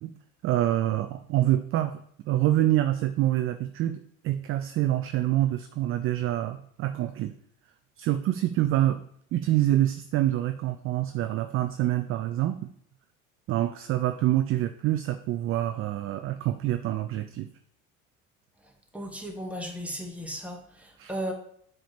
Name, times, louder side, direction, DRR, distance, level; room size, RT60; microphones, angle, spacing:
voice 1, 0.4-2.0 2.3-7.3 8.0-9.0 9.3-12.7 13.5-17.5 21.0-21.1, right 13 dB, 35° right, 9 dB, 0.4 m, -26 dB
voice 2, 18.9-21.3, equal, 5° right, 2 dB, 1.3 m, -35 dB
7.5 x 2.8 x 5.1 m, 0.67 s
hypercardioid pair, 70°, 42 cm